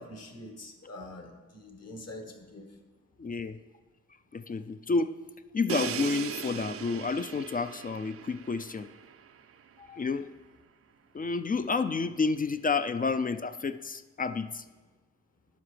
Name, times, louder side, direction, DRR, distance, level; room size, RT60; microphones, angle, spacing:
voice 1, 0.0-2.7, left 1 dB, 50° left, 4 dB, 1.4 m, -45 dB
voice 2, 3.2-3.6 4.3-5.1 5.5-8.9 9.8-10.3 11.1-14.6, left 4 dB, 30° left, 11 dB, 0.4 m, -30 dB
Crash cymbal, 5.7-9.5, right 8 dB, 45° right, 0.4 m, -38 dB
11.5 x 4.8 x 3.3 m, 1.2 s
supercardioid pair, 45°, 31 cm